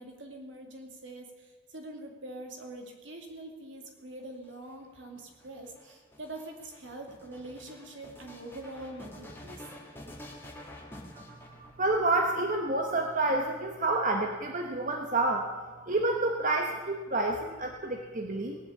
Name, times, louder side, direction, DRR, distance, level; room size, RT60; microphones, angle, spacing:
voice 1, 0.0-9.7, right 1 dB, 70° right, 3 dB, 2.4 m, -44 dB
sound 1, 4.2-12.2 13.0-13.8, left 1 dB, 10° left, 1.7 m, -49 dB
voice 2, 11.2-18.6, right 2 dB, 40° right, 2 dB, 1.1 m, -29 dB
18.5 x 7.3 x 8.4 m, 1.4 s
head